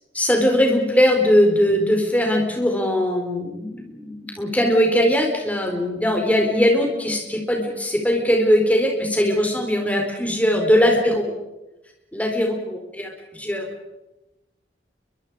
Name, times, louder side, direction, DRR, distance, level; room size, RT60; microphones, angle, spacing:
voice 1, 0.1-11.3 12.1-13.1 13.4-13.7, equal, 10° left, 1 dB, 4.3 m, -20 dB
30.0 x 23.5 x 4.9 m, 0.99 s
head